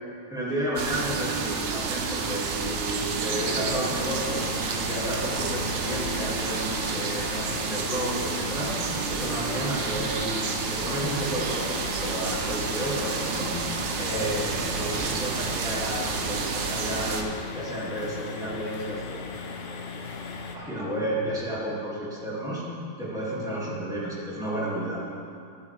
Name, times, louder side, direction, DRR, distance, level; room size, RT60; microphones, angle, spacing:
voice 1, 0.3-4.5 4.8-8.8 9.1-13.5 14.0-19.9 20.2-22.7 23.0-25.0, right 1 dB, ahead, -8 dB, 1.9 m, -32 dB
sound 1, 0.8-17.2, right 5 dB, 80° right, 1.4 m, -30 dB
sound 2, 3.3-20.6, left 5 dB, 75° left, 1.4 m, -37 dB
12.0 x 8.4 x 3.3 m, 2.6 s
omnidirectional pair, 2.0 m